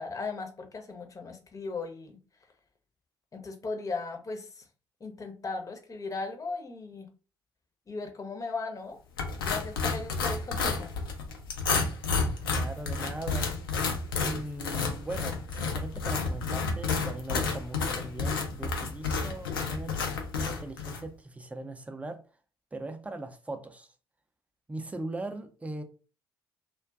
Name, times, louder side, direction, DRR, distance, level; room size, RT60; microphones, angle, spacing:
voice 1, 0.0-2.2 3.3-4.6 5.0-7.1 7.9-9.0 9.3-10.9, left 3 dB, 30° left, 0.7 m, -37 dB
sound 1, 9.2-21.0, left 4 dB, 80° left, 0.4 m, -31 dB
voice 2, 12.5-13.5 14.2-20.0 20.4-22.2 22.7-23.9 24.7-25.8, right 2 dB, 10° right, 0.5 m, -39 dB
2.5 x 2.2 x 2.3 m
figure-of-eight pair, 45°, 12 cm